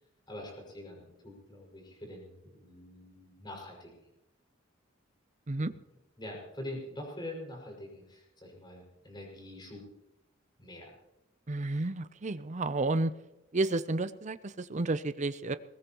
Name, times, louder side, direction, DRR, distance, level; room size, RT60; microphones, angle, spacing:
voice 1, 0.3-3.9 5.6-5.7 6.2-9.8 10.6-10.9, left 1 dB, 25° left, -1 dB, 5.9 m, -44 dB
voice 2, 11.5-13.1 13.5-15.6, right 2 dB, 35° right, 12 dB, 0.6 m, -31 dB
21.0 x 19.0 x 3.0 m, 0.92 s
head